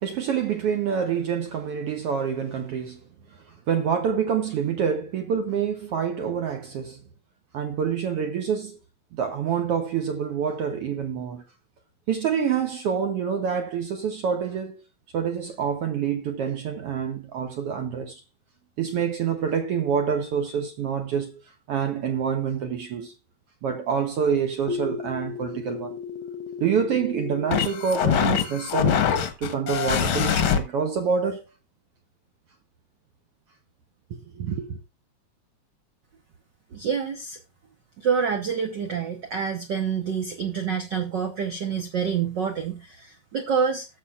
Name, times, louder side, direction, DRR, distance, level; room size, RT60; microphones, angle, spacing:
voice 1, 0.0-3.0 3.7-7.0 7.5-8.8 9.1-11.4 12.1-14.8 15.1-18.2 18.8-21.4 21.7-23.1 23.6-26.0 26.6-29.1 29.4-31.4 34.1-34.8, right 7 dB, 70° right, 1.5 m, -27 dB
sound 1, 24.7-30.6, left 8 dB, 60° left, 1.4 m, -25 dB
voice 2, 36.7-37.4 38.0-43.9, right 6 dB, 85° right, 0.9 m, -27 dB
18.5 x 6.7 x 2.4 m
omnidirectional pair, 3.4 m